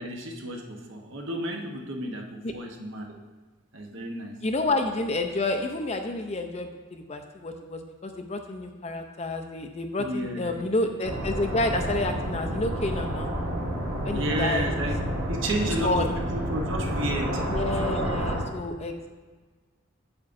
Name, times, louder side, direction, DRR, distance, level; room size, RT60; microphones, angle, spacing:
voice 1, 0.0-3.1 3.7-4.4 10.0-10.6 14.1-15.0 15.3-17.4, right 1 dB, 60° right, 1 dB, 1.0 m, -32 dB
voice 2, 4.4-13.3 14.0-14.7 15.8-16.2 17.5-19.1, left 2 dB, 30° left, 6 dB, 0.5 m, -29 dB
sound 1, 11.0-18.4, equal, 85° right, 2.5 m, -29 dB
8.7 x 7.3 x 2.6 m, 1.4 s
head